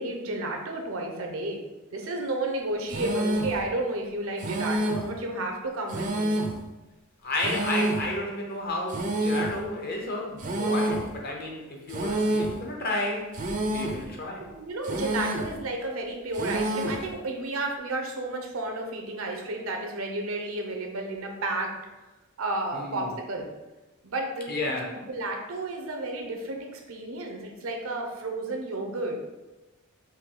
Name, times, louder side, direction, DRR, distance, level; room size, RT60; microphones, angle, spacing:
voice 1, 0.0-1.6 1.9-6.3 14.4-21.7 22.4-23.5 24.0-24.5 24.9-29.2, right 2 dB, 75° right, 2 dB, 0.7 m, -32 dB
sound 1, 2.9-3.6 4.4-5.1 5.9-6.6 7.4-8.1 8.9-9.6 10.4-11.1 11.9-12.6 13.3-14.1 14.8-15.6 16.3-17.1, right 1 dB, 35° right, 0.5 m, -28 dB
voice 2, 7.2-13.4 13.7-14.5 22.7-23.1 24.5-25.0, left 2 dB, 45° left, 0 dB, 0.8 m, -32 dB
4.6 x 2.6 x 3.8 m, 1.1 s
head